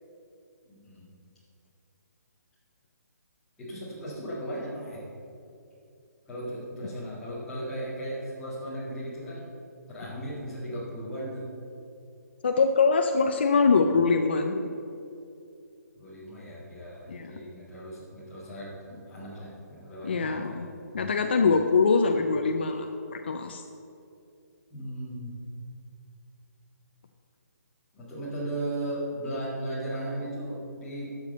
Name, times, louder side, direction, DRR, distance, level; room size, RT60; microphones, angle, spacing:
voice 1, 0.7-1.1 3.6-5.0 6.3-9.5 9.9-11.5 15.9-20.7 24.7-25.4 27.9-31.1, right 1 dB, 5° left, -10 dB, 1.9 m, -36 dB
voice 2, 12.4-14.7 17.1-17.3 20.0-20.7 20.9-23.6, left 4 dB, 35° left, 5 dB, 0.5 m, -23 dB
12.5 x 6.7 x 5.4 m, 2.6 s
hypercardioid pair, 180°, 9 cm